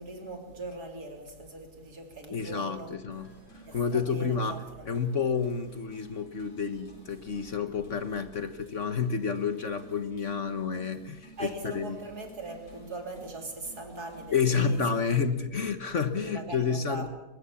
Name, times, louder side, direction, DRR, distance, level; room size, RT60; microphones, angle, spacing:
voice 1, 0.0-2.9 3.7-5.0 11.4-14.8 15.2-15.4 16.2-17.1, right 2 dB, 65° right, 4 dB, 3.9 m, -41 dB
voice 2, 2.3-3.3 3.7-12.0 14.3-17.1, left 5 dB, 50° left, 10 dB, 1.4 m, -30 dB
sound 1, 3.1-15.2, right 1 dB, 90° left, 7.7 m, -54 dB
23.5 x 21.0 x 7.2 m, 1.1 s
omnidirectional pair, 1.8 m